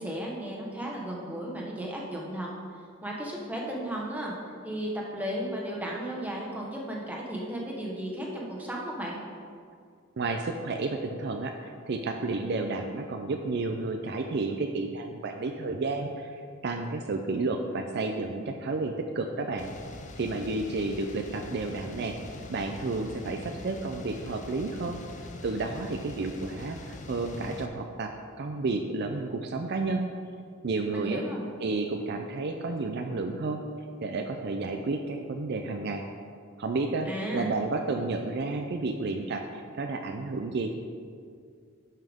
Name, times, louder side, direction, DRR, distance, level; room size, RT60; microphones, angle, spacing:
voice 1, 0.0-2.5 3.0-4.3 4.6-9.2 30.9-31.4 37.0-37.5, right 1 dB, 10° right, -3 dB, 1.2 m, -34 dB
voice 2, 10.2-19.7 20.2-22.2 22.5-25.0 25.4-30.1 30.6-31.2 31.6-33.6 34.0-36.0 36.6-40.9, right 3 dB, 50° right, 4 dB, 0.4 m, -31 dB
sound 1, 19.6-27.7, left 2 dB, 35° left, 0.6 m, -43 dB
11.0 x 5.6 x 3.6 m, 2.2 s
head